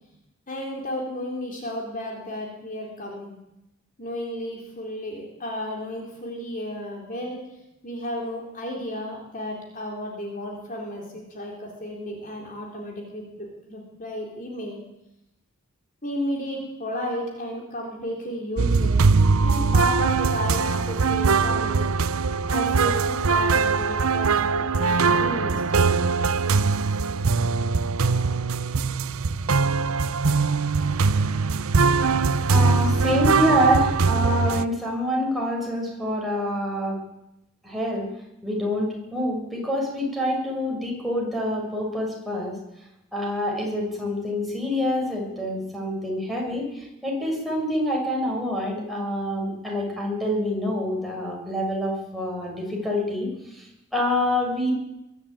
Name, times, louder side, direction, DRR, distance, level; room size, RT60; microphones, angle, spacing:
voice 1, 0.5-3.4 4.0-7.4 7.8-14.8 16.0-19.0 19.4-21.8 22.5-25.9, equal, 40° left, 0 dB, 3.9 m, -33 dB
sound 1, 18.6-34.6, right 4 dB, 80° right, 0.7 m, -21 dB
voice 2, 32.5-37.0 37.6-38.1 38.4-42.5 43.1-54.7, left 1 dB, ahead, -2 dB, 6.7 m, -26 dB
22.5 x 12.5 x 9.0 m, 0.89 s
head